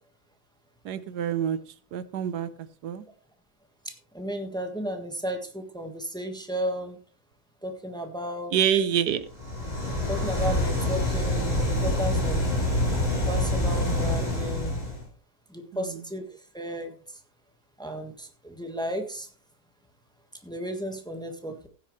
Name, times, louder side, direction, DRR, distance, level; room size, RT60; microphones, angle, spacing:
voice 1, 0.8-1.6 1.9-2.5 2.8-3.0 8.5-9.2, right 9 dB, 80° right, 14 dB, 1.3 m, -26 dB
voice 2, 3.8-7.0 7.6-8.5 10.1-12.4 13.3-14.8 15.5-16.2 16.5-16.9 17.8-19.3 20.4-21.7, equal, 5° left, 5 dB, 1.3 m, -34 dB
sound 1, 9.3-15.0, left 1 dB, 25° left, 3.9 m, -26 dB
15.5 x 9.5 x 3.2 m, 0.41 s
omnidirectional pair, 1.7 m